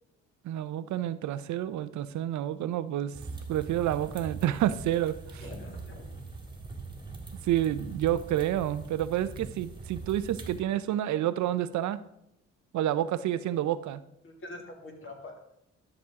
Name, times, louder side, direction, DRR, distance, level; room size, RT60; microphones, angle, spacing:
voice 1, 0.4-3.2 3.5-5.5 7.4-12.0 12.7-14.0, right 12 dB, 70° right, 14 dB, 0.5 m, -29 dB
sound 1, 3.1-10.6, right 3 dB, 15° right, 1.9 m, -42 dB
voice 2, 5.4-6.1 14.2-15.5, left 1 dB, 45° left, 1 dB, 2.4 m, -44 dB
12.0 x 6.1 x 3.6 m, 0.77 s
cardioid pair, 90°, 30 cm